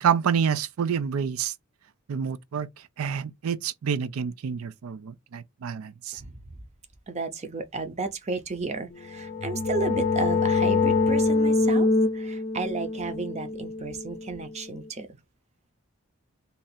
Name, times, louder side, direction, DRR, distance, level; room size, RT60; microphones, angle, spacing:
voice 1, 0.0-1.5 2.1-2.7 3.0-6.2, right 7 dB, 75° right, 0.4 m, -28 dB
voice 2, 7.1-11.9 12.1-15.1, right 3 dB, 30° right, 0.6 m, -33 dB
sound 1, 9.0-14.6, left 3 dB, 40° left, 0.5 m, -25 dB
2.7 x 2.4 x 4.1 m
head